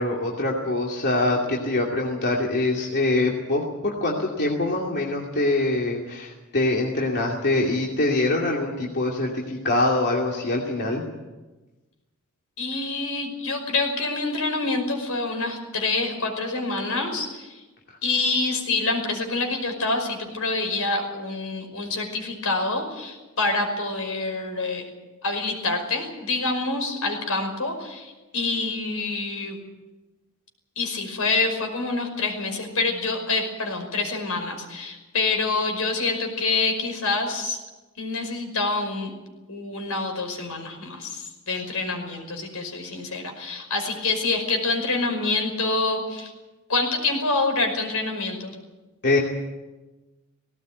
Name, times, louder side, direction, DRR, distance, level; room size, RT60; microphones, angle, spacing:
voice 1, 0.0-11.0 49.0-49.2, left 2 dB, 50° left, -2 dB, 2.7 m, -24 dB
voice 2, 12.6-17.6 18.0-24.9 25.2-29.6 30.8-37.6 38.0-39.1 39.5-46.3 46.7-48.6, left 3 dB, 75° left, 4 dB, 5.5 m, -26 dB
18.5 x 18.5 x 9.4 m, 1.1 s
head